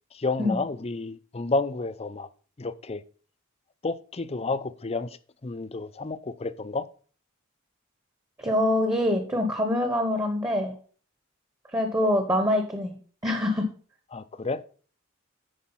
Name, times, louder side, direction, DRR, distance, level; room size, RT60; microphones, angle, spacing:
voice 1, 0.1-2.3 2.6-3.0 3.8-5.2 5.4-6.9 14.1-14.6, left 3 dB, 30° left, 0.5 m, -30 dB
voice 2, 8.4-10.8 11.7-12.9 13.2-13.7, left 1 dB, 15° right, 1.1 m, -25 dB
10.0 x 4.7 x 5.6 m
head